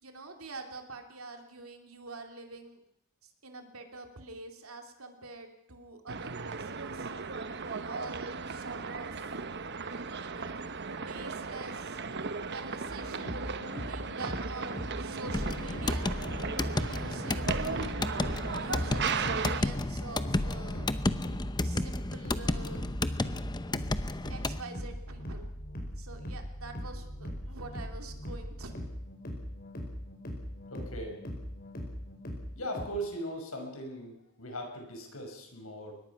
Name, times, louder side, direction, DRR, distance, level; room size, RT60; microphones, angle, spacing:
voice 1, 0.0-2.8 3.2-7.1 7.6-9.3 10.2-12.0 12.5-13.4 13.8-16.1 16.7-18.1 18.5-20.9 21.6-23.0 24.3-25.5 26.0-28.8, right 3 dB, 85° right, 5 dB, 2.9 m, -46 dB
sound 1, 6.1-19.6, right 5 dB, 55° right, 1.1 m, -36 dB
sound 2, 12.9-32.9, equal, 45° left, 5.2 m, -40 dB
sound 3, 15.3-24.6, left 2 dB, 20° left, 0.8 m, -32 dB
voice 2, 30.7-31.2 32.6-35.9, right 1 dB, 90° left, 3 dB, 5.8 m, -39 dB
23.0 x 20.0 x 6.0 m, 0.79 s
head